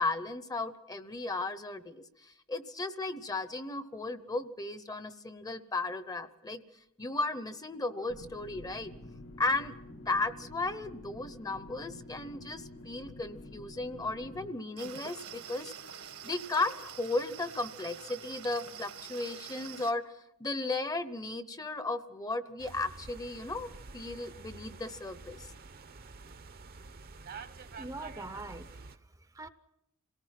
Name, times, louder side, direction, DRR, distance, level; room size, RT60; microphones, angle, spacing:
voice 1, 0.0-6.6 7.0-8.9 9.4-15.7 16.2-20.1 20.4-25.5, left 2 dB, 15° left, 12 dB, 0.8 m, -35 dB
sound 1, 8.1-14.5, left 1 dB, 70° left, 2.0 m, -49 dB
sound 2, 14.8-19.9, right 8 dB, 80° right, 1.8 m, -46 dB
sound 3, 22.6-29.0, right 4 dB, 45° right, 0.8 m, -48 dB
voice 2, 27.8-29.5, right 2 dB, 15° right, 11 dB, 0.7 m, -44 dB
27.0 x 18.0 x 5.8 m, 0.82 s
head